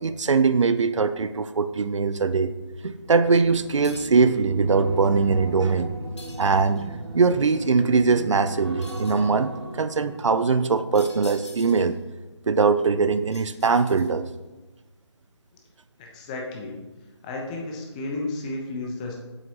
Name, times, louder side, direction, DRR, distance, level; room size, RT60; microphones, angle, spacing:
voice 1, 0.0-2.5 2.8-5.9 6.4-12.0 12.5-14.3, right 4 dB, 85° right, 12 dB, 0.5 m, -21 dB
sound 1, 2.6-12.0 12.3-12.7, right 1 dB, 60° right, 0.9 m, -38 dB
sound 2, 3.8-4.3 6.2-6.9 8.8-9.3 10.9-12.0 13.3-14.4, left 2 dB, 70° left, 1.4 m, -46 dB
voice 2, 16.0-16.8 17.2-19.2, left 2 dB, 15° left, 0 dB, 0.7 m, -32 dB
7.9 x 6.0 x 2.9 m, 1.1 s
figure-of-eight pair, 155°, 15 cm